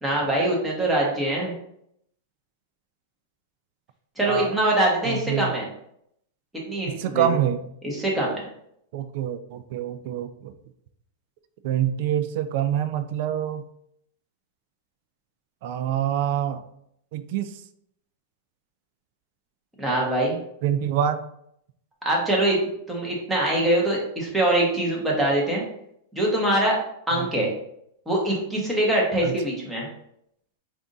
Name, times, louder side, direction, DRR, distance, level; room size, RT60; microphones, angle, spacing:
voice 1, 0.0-1.5 4.2-5.7 6.7-7.3 7.8-8.4 19.8-20.4 22.0-25.6 26.1-26.8 27.1-27.5 28.1-29.9, right 1 dB, 5° right, -3 dB, 1.3 m, -23 dB
voice 2, 5.0-5.5 6.8-7.7 8.9-10.5 11.6-13.7 15.6-16.6 17.1-17.6 20.6-21.2 27.1-27.5 29.2-29.3, right 10 dB, 55° right, 9 dB, 0.4 m, -26 dB
3.5 x 2.6 x 3.9 m, 0.73 s
hypercardioid pair, 140°, 0 cm